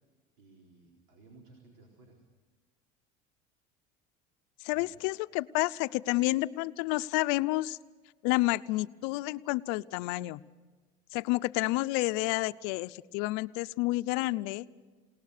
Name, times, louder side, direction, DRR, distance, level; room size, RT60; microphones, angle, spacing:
voice 1, 0.4-2.2 4.7-5.0, right 3 dB, 85° right, 1 dB, 4.1 m, -57 dB
voice 2, 4.6-7.8 8.2-10.4 11.1-14.7, left 20 dB, 75° left, 14 dB, 0.6 m, -30 dB
28.0 x 18.5 x 6.6 m, 1.4 s
cardioid pair, 155°, 16 cm